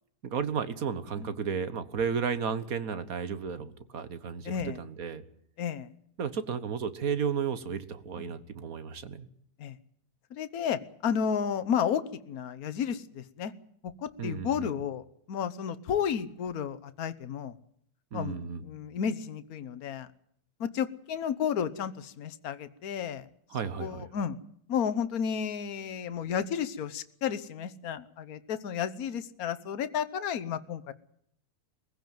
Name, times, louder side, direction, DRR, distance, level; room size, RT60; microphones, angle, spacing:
voice 1, 0.2-5.2 6.2-9.3 14.2-14.8 18.1-18.6 23.5-24.1, right 6 dB, 60° right, 13 dB, 1.8 m, -33 dB
voice 2, 4.4-4.8 5.6-5.9 8.2-8.3 9.6-9.8 10.3-13.5 13.8-17.5 18.1-20.1 20.6-23.2 23.8-24.4 24.7-30.9, left 8 dB, 65° left, 12 dB, 1.5 m, -32 dB
22.0 x 16.0 x 9.3 m, 0.67 s
omnidirectional pair, 1.7 m